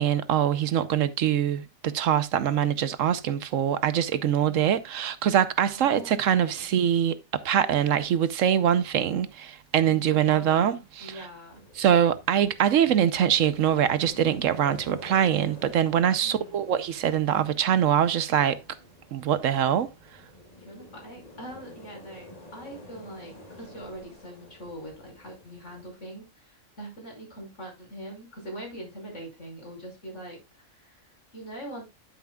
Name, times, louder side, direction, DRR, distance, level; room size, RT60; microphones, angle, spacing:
voice 1, 0.0-11.3 11.7-18.6 19.1-19.9, right 9 dB, 70° right, 1.0 m, -23 dB
voice 2, 5.7-6.7 9.8-11.6 16.2-16.6 20.6-31.9, right 1 dB, 60° left, 5.9 m, -43 dB
sound 1, 11.5-25.9, left 1 dB, 30° left, 2.2 m, -50 dB
10.0 x 9.3 x 2.3 m
omnidirectional pair, 1.4 m